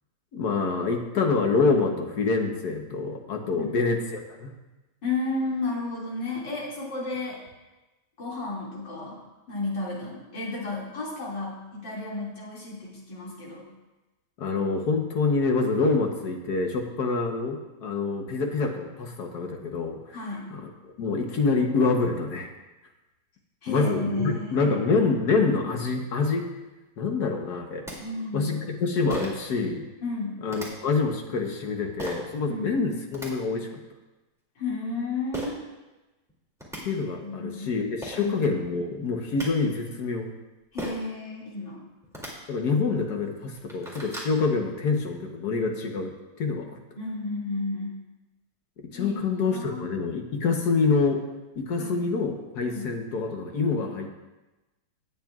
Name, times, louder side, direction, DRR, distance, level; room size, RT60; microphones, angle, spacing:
voice 1, 0.3-4.5 14.4-20.0 21.0-22.5 23.7-26.4 27.0-27.8 28.3-29.8 30.4-33.8 36.8-40.3 42.5-46.1 46.4-46.7 48.9-51.2 51.6-54.1, left 4 dB, 65° left, 3 dB, 1.6 m, -26 dB
voice 2, 5.0-7.4 8.2-9.2 9.5-13.7 20.1-20.5 23.6-24.8 28.0-28.5 30.0-30.4 32.5-32.7 34.6-35.6 37.2-37.6 38.1-38.4 40.7-41.8 46.9-48.0 48.9-49.8 51.8-52.1 52.6-52.9, left 3 dB, 90° left, -5 dB, 3.2 m, -32 dB
sound 1, 27.5-27.6 27.9-28.0 29.1-29.5 30.5-30.7 32.0-32.2 32.9-33.3 35.3-35.5 36.3-36.4 36.6-36.8 37.7-37.8 38.0-38.2 39.1-39.5 40.8-41.1 42.0-42.3 42.9-43.0 43.4-44.3, equal, ahead, 2.4 m, -36 dB
18.0 x 7.4 x 2.4 m, 1.1 s
omnidirectional pair, 1.9 m